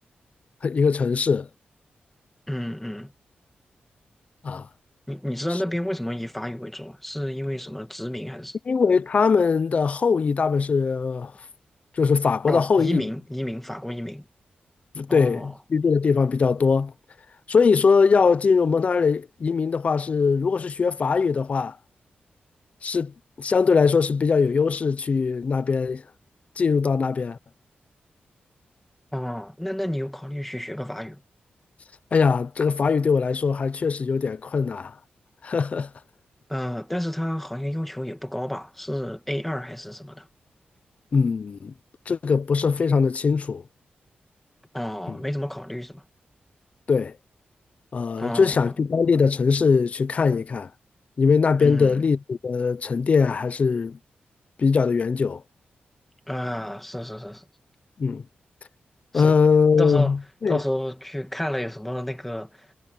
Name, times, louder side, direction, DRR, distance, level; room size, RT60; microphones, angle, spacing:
voice 1, 0.6-1.5 4.4-4.7 8.7-11.3 12.0-13.1 14.9-16.9 17.5-21.8 22.8-26.0 26.6-27.4 32.1-34.9 35.4-35.9 41.1-41.7 42.1-43.6 45.1-45.2 46.9-47.1 47.9-50.7 51.2-54.0 54.6-55.4 58.0-58.2 59.1-60.6, left 5 dB, 40° left, 0.6 m, -21 dB
voice 2, 2.5-3.1 5.1-8.6 12.5-14.3 15.1-15.6 29.1-31.2 36.5-40.3 44.7-46.0 48.2-48.7 51.6-52.0 56.3-57.4 59.1-59.4 59.7-60.1 60.5-62.7, left 1 dB, 5° left, 1.8 m, -30 dB
wide cardioid pair, 170°, 3 cm